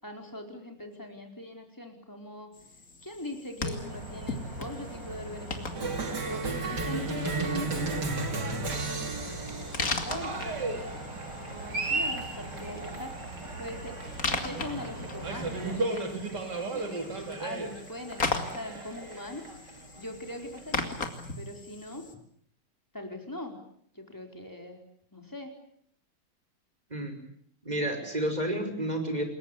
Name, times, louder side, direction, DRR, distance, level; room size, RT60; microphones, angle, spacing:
voice 1, 0.0-2.5 3.0-9.2 9.7-13.1 13.6-14.0 14.3-19.5 19.9-21.0 21.4-22.1 22.9-23.6 23.9-24.8 25.1-25.6, left 1 dB, 10° left, 3 dB, 4.6 m, -41 dB
sound 1, 2.5-22.1, left 3 dB, 50° left, 2.9 m, -39 dB
sound 2, 3.6-15.8, right 2 dB, 90° right, 6.1 m, -42 dB
Cheering, 5.8-20.9, right 3 dB, 65° right, 3.6 m, -34 dB
voice 2, 26.9-27.2 27.6-29.2, right 1 dB, 20° right, 6 dB, 5.6 m, -30 dB
27.5 x 21.5 x 8.5 m, 0.66 s
omnidirectional pair, 1.9 m